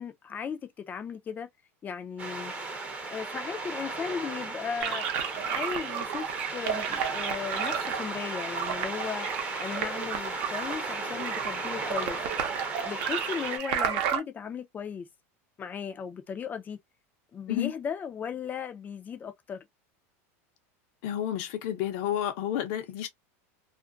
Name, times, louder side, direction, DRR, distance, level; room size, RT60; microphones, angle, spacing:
voice 1, 0.0-1.5 1.8-2.5 3.1-12.2 12.8-15.1 15.6-16.8 17.3-19.6, left 7 dB, 20° left, 0.5 m, -36 dB
sound 1, 2.2-13.6, right 3 dB, 15° right, 0.7 m, -36 dB
sound 2, 4.8-14.2, right 8 dB, 60° right, 0.7 m, -33 dB
voice 2, 21.0-23.1, left 11 dB, 60° left, 0.8 m, -30 dB
2.5 x 2.1 x 2.3 m
supercardioid pair, 135°, 8 cm